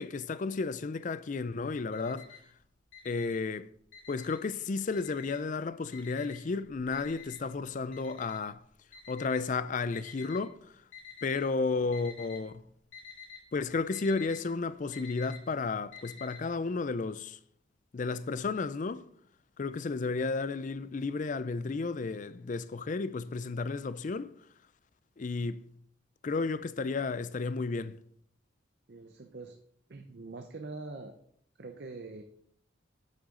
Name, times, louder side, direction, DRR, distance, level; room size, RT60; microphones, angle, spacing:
voice 1, 0.0-2.3 3.0-3.7 4.1-8.6 9.1-10.7 11.2-12.5 13.5-17.4 17.9-19.1 19.6-24.3 25.2-25.6 26.2-28.0, left 4 dB, 40° left, 0.4 m, -33 dB
Alarm, 1.9-2.5 2.9-4.5 4.9-5.6 5.9-10.4 10.9-11.5 11.8-12.4 12.7-16.4, left 7 dB, 70° left, 3.0 m, -49 dB
voice 2, 28.9-29.6 29.9-31.1 31.6-32.2, right 3 dB, 50° right, 0.7 m, -44 dB
8.9 x 8.8 x 3.8 m
head